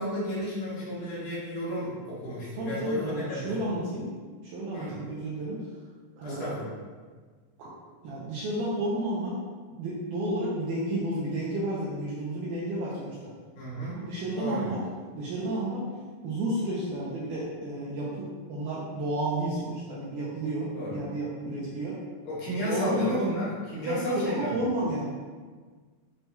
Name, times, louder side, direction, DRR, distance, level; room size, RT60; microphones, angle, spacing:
voice 1, 0.0-3.7 4.7-5.0 6.2-6.7 13.5-14.0 14.4-14.7 20.7-21.0 22.2-24.7, equal, 80° left, -8 dB, 3.1 m, -32 dB
voice 2, 2.6-4.1 4.4-5.6 6.2-6.6 7.6-7.7 8.0-9.4 9.8-13.3 13.9-14.8 15.1-15.9 16.2-22.0 22.6-23.2 23.9-25.1, right 1 dB, 80° right, -6 dB, 2.0 m, -31 dB
7.8 x 2.8 x 2.2 m, 1.5 s
omnidirectional pair, 4.1 m